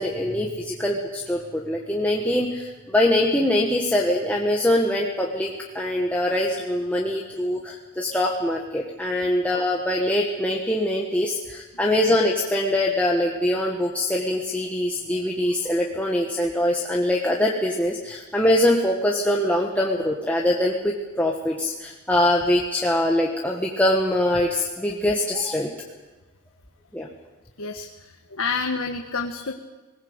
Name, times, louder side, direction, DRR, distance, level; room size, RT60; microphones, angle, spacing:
voice 1, 0.0-25.7 26.9-27.1, left 1 dB, 5° left, -2 dB, 1.6 m, -23 dB
voice 2, 27.6-29.5, left 4 dB, 75° left, 3 dB, 1.5 m, -29 dB
21.0 x 20.0 x 8.2 m, 1.2 s
head